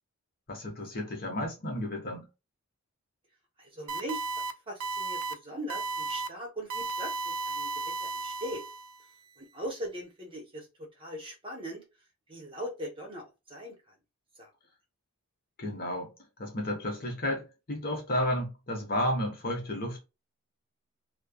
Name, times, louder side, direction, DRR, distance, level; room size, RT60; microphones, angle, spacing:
voice 1, 0.5-2.3 15.6-16.1 16.4-20.0, left 1 dB, 40° left, 1.0 m, -32 dB
voice 2, 3.6-4.3 4.7-8.6 9.4-11.8 12.3-13.9 14.4-14.5, equal, 25° right, 0.8 m, -40 dB
sound 1, 3.9-4.5 4.8-5.3 5.7-6.3 6.7-9.0, right 3 dB, 70° right, 0.4 m, -34 dB
3.2 x 2.1 x 2.2 m
head